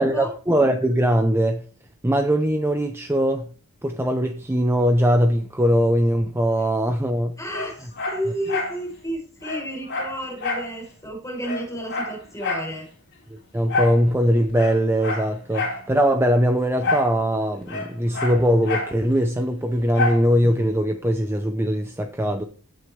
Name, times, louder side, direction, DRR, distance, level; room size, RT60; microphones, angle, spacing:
voice 1, 0.0-1.6 2.0-3.5 3.8-7.4 13.3-22.4, equal, 10° right, 0.7 m, -21 dB
voice 2, 7.4-12.8, equal, 15° left, 6.3 m, -32 dB
Dog, 7.5-8.8 9.1-9.2 9.4-10.7 11.1-11.2 11.4-12.7 13.7-14.0 14.5-15.8 16.8-17.1 17.4-19.0 19.9-20.3 20.7-20.8, left 2 dB, 50° left, 3.8 m, -27 dB
16.0 x 6.5 x 3.3 m
head